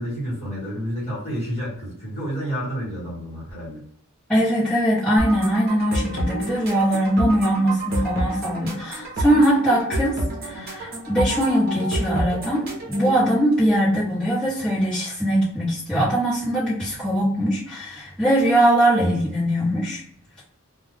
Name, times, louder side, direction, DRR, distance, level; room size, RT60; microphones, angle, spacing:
voice 1, 0.0-3.8, equal, 30° left, -7 dB, 1.2 m, -30 dB
voice 2, 4.3-20.0, right 1 dB, 5° left, -12 dB, 1.0 m, -21 dB
sound 1, 5.2-13.2, right 1 dB, 45° right, 0.8 m, -29 dB
2.3 x 2.3 x 3.3 m, 0.63 s
head